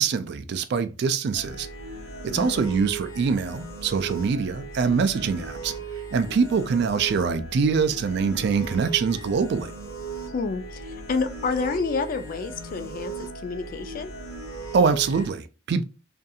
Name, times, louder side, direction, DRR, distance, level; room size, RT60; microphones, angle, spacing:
voice 1, 0.0-1.7 2.2-5.7 6.1-9.7 14.7-15.8, right 5 dB, 60° right, 0.3 m, -24 dB
sound 1, 1.3-15.3, right 3 dB, 85° left, 0.9 m, -37 dB
voice 2, 2.4-2.8 10.3-14.1, left 4 dB, 45° left, 0.3 m, -29 dB
2.6 x 2.3 x 2.6 m
head